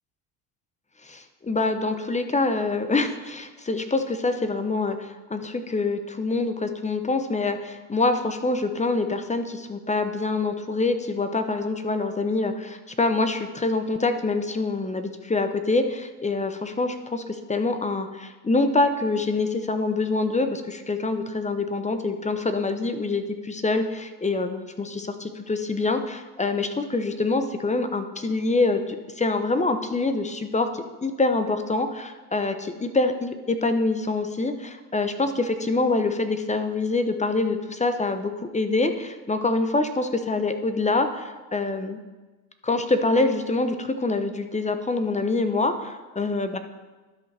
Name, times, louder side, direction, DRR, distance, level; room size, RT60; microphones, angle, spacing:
voice 1, 1.0-42.0 42.6-46.6, left 3 dB, 15° left, 8 dB, 0.8 m, -25 dB
12.0 x 5.4 x 3.4 m, 1.2 s
supercardioid pair, 75°, 41 cm